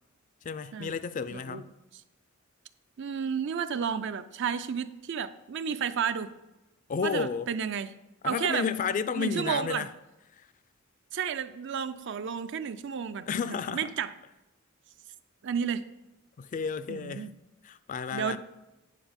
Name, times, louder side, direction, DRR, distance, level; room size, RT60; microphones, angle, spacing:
voice 1, 0.4-1.7 6.9-7.5 8.2-9.9 10.3-10.5 13.3-13.9 16.4-17.3 17.6-18.4, left 6 dB, 40° left, 0.3 m, -32 dB
voice 2, 1.3-1.6 3.0-6.3 7.0-7.9 8.2-8.6 9.2-9.9 11.1-13.3 13.7-14.1 15.4-15.8 16.9-17.3 18.1-18.4, right 7 dB, 60° right, 0.5 m, -32 dB
9.1 x 4.8 x 5.2 m
head